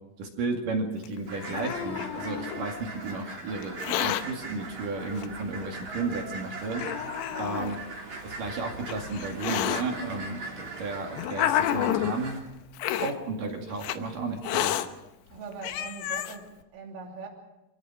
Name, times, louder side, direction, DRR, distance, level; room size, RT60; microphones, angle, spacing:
voice 1, 0.2-6.8 7.4-7.8 8.2-12.4 13.0-14.7, right 3 dB, 50° right, 2 dB, 3.4 m, -33 dB
Hiss, 1.0-2.7 3.6-4.2 5.2-5.3 6.1-6.2 6.7-7.8 8.6-9.8 10.7-12.2 12.8-13.1 13.8-14.0 14.4-14.9 15.3-15.4 15.6-16.4, left 12 dB, 75° left, 2.6 m, -29 dB
sound 1, 1.3-12.4, right 3 dB, 30° right, 3.0 m, -40 dB
voice 2, 7.3-7.7 15.3-17.3, right 4 dB, 80° right, 1 dB, 5.6 m, -42 dB
26.5 x 16.5 x 6.3 m, 0.96 s
omnidirectional pair, 5.7 m